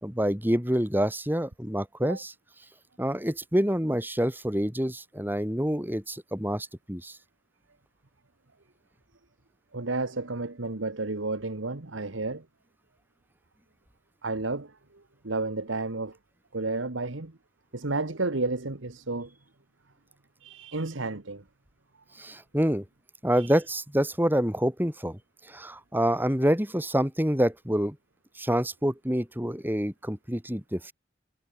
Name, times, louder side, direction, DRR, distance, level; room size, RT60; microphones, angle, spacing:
voice 1, 0.0-2.3 3.0-7.2 22.2-22.8 23.2-25.2 25.5-28.0 28.4-30.9, equal, 10° right, 3.8 m, -27 dB
voice 2, 9.7-12.4 14.2-16.2 16.5-17.3 17.7-19.3 20.4-21.4 23.4-23.6, right 3 dB, 75° right, 1.5 m, -32 dB
head